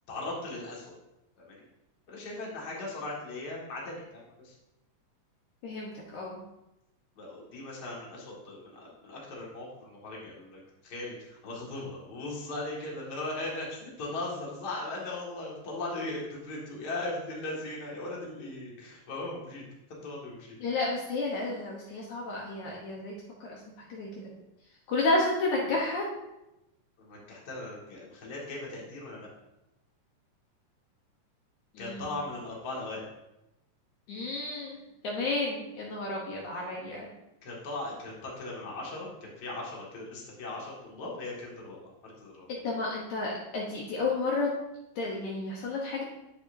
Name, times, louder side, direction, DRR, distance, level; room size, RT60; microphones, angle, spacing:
voice 1, 0.1-0.9 1.4-1.6 2.1-4.6 7.2-19.6 20.0-20.6 27.0-29.3 31.8-33.1 37.4-42.5, left 2 dB, 35° left, -4 dB, 2.0 m, -38 dB
voice 2, 5.6-6.4 20.6-24.3 24.9-26.1 31.7-32.1 34.1-37.1 42.5-44.5 45.0-46.0, left 2 dB, 65° left, -3 dB, 2.3 m, -32 dB
10.0 x 7.0 x 2.7 m, 0.90 s
omnidirectional pair, 4.0 m